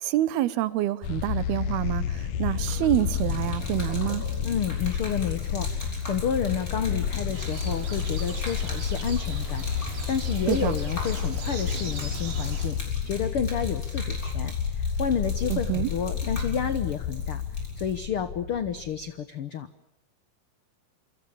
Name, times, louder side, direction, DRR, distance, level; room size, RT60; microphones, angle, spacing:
voice 1, 0.0-4.2 10.5-10.7 15.5-15.9, right 15 dB, 90° right, 3.1 m, -27 dB
sound 1, 1.0-19.1, left 7 dB, 65° left, 1.9 m, -30 dB
Gurgling / Liquid, 2.5-18.0, left 1 dB, 20° left, 7.5 m, -43 dB
voice 2, 4.4-12.8 13.0-14.5 15.0-17.4 17.8-19.7, left 7 dB, 80° left, 1.2 m, -30 dB
sound 2, 7.3-12.7, right 4 dB, 65° right, 6.8 m, -39 dB
28.0 x 25.5 x 7.1 m
omnidirectional pair, 4.3 m